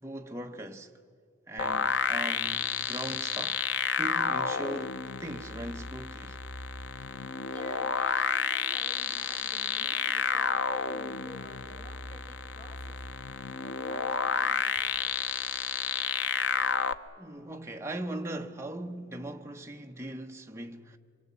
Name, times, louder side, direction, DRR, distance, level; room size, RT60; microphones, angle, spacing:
voice 1, 0.0-1.0 1.5-3.7 3.9-6.4 17.2-21.0, right 1 dB, 15° right, 1.1 m, -39 dB
sound 1, 1.6-16.9, left 6 dB, 85° left, 0.9 m, -30 dB
voice 2, 7.4-13.0 13.3-15.1, left 1 dB, 40° left, 5.2 m, -51 dB
26.0 x 25.0 x 8.4 m
head